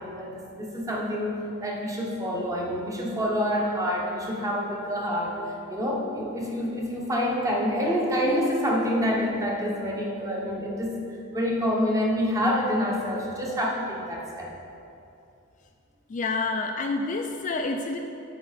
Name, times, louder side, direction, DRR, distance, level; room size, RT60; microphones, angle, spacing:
voice 1, 0.0-5.3 5.7-11.0 11.3-14.5, equal, 15° right, -2 dB, 0.9 m, -27 dB
voice 2, 16.1-18.0, left 3 dB, 35° left, 4 dB, 0.3 m, -28 dB
8.9 x 4.3 x 4.0 m, 2.7 s
head